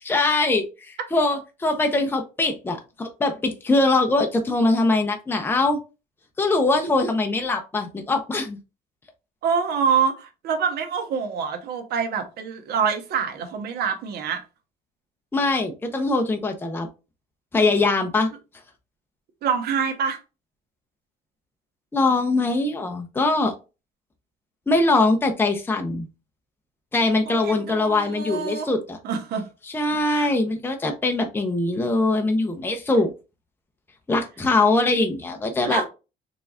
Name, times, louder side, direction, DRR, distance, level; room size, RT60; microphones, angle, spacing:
voice 1, 0.1-5.8 6.4-8.6 15.3-16.9 17.5-18.3 21.9-23.5 24.7-26.1 26.9-29.0 29.7-33.1 34.1-35.8, left 2 dB, 15° left, 0.7 m, -22 dB
voice 2, 9.4-14.4 19.4-20.2 27.3-28.7 29.0-29.5 30.0-30.3 35.6-35.8, right 6 dB, 70° right, 1.0 m, -26 dB
3.9 x 3.4 x 2.3 m
cardioid pair, 110°, 17 cm